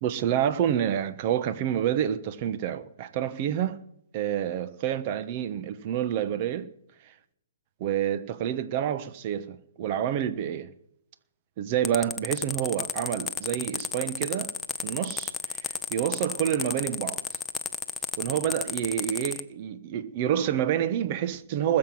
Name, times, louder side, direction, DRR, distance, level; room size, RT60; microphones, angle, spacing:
voice 1, 0.0-3.8 4.1-6.7 7.8-10.7 11.6-14.5 14.8-17.2 18.2-21.8, right 10 dB, 40° right, 1.2 m, -28 dB
sound 1, 11.8-19.4, left 5 dB, 10° left, 0.8 m, -32 dB
20.0 x 7.7 x 9.3 m
hypercardioid pair, 135°, 0 cm